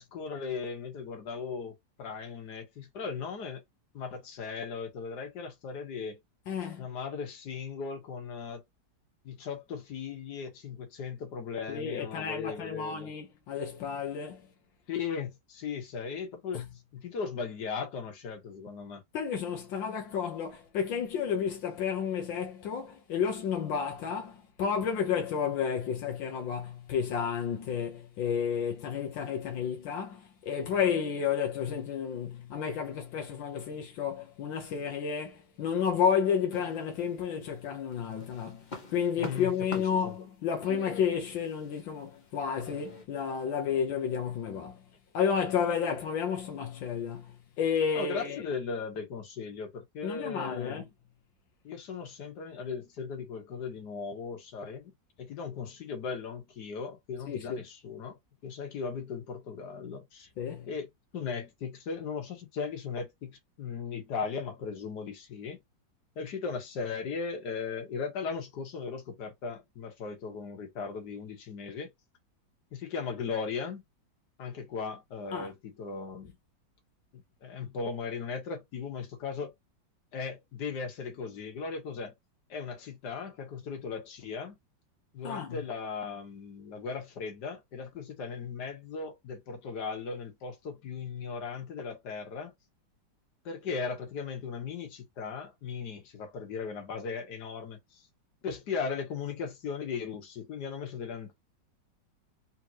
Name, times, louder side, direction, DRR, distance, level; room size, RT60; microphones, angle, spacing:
voice 1, 0.0-3.6 3.9-6.2 6.8-8.6 9.2-13.1 14.9-16.6 16.9-19.0 39.2-40.2 48.0-50.8 51.6-54.9 55.2-60.3 60.7-60.9 61.1-65.6 66.2-71.9 72.7-73.8 74.4-76.3 77.1-79.5 80.1-82.1 82.5-84.6 85.1-92.5 93.5-98.1 98.4-101.4, left 5 dB, 60° left, 1.8 m, -37 dB
voice 2, 6.5-6.9 11.7-14.5 16.5-16.6 19.1-44.8 45.1-48.5 50.0-50.8 57.3-57.6 60.4-60.7 75.3-75.5 85.2-85.6, left 7 dB, 80° left, 1.6 m, -31 dB
sound 1, 36.5-37.5 37.9-43.0, left 3 dB, 30° left, 0.9 m, -45 dB
4.3 x 3.4 x 2.8 m
omnidirectional pair, 2.0 m